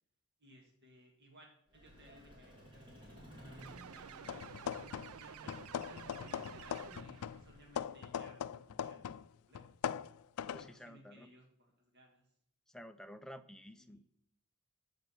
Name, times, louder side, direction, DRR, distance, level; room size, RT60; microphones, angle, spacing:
voice 1, 0.4-4.5 5.1-5.5 5.9-9.9 10.4-12.3 13.8-14.0, equal, 50° right, 1 dB, 1.8 m, -61 dB
Vehicle, 1.7-8.1, equal, 25° right, 2.9 m, -56 dB
sound 1, 3.6-7.4, right 8 dB, 80° right, 0.4 m, -52 dB
sound 2, 4.2-5.2 5.5-9.3 9.5-10.7, left 8 dB, 85° left, 0.4 m, -41 dB
voice 2, 10.5-11.3 12.7-14.0, equal, 5° left, 8 dB, 0.5 m, -52 dB
13.5 x 5.2 x 6.3 m, 0.72 s
head